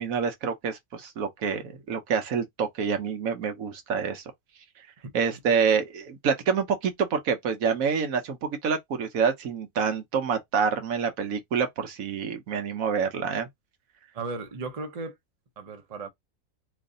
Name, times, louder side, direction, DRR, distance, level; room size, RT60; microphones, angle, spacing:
voice 1, 0.0-4.2 5.1-13.5, right 6 dB, 70° right, 1.1 m, -27 dB
voice 2, 14.1-15.2 15.6-16.1, right 3 dB, 40° right, 0.5 m, -35 dB
3.1 x 2.6 x 3.7 m
omnidirectional pair, 1.6 m